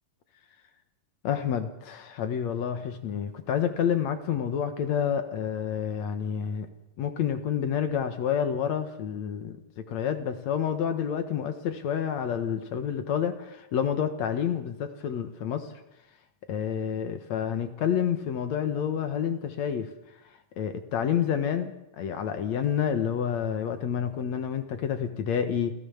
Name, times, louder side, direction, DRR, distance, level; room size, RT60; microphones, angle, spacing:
voice 1, 1.2-6.7 7.0-15.7 16.5-19.9 20.6-25.7, left 8 dB, 60° left, 9 dB, 2.3 m, -29 dB
28.5 x 15.0 x 7.1 m, 0.88 s
omnidirectional pair, 3.9 m